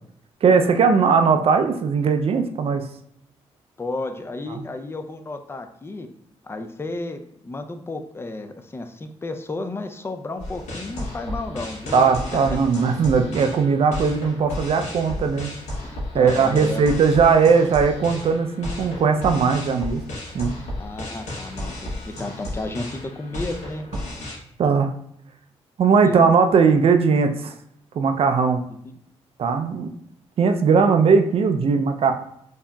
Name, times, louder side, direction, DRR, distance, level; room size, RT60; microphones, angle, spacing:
voice 1, 0.4-2.9 4.5-4.6 11.9-15.5 16.1-20.0 20.3-20.5 24.6-24.9 25.8-27.5 28.0-28.6 29.4-29.9 30.4-32.1, right 5 dB, 55° right, 6 dB, 0.4 m, -19 dB
voice 2, 3.8-6.1 6.4-12.0 15.8-16.8 20.8-23.8 26.0-26.2, left 2 dB, 20° left, 7 dB, 0.4 m, -32 dB
sound 1, 10.4-24.4, left 1 dB, 85° left, 1.0 m, -33 dB
4.4 x 2.8 x 2.2 m, 0.71 s
cardioid pair, 70°, 12 cm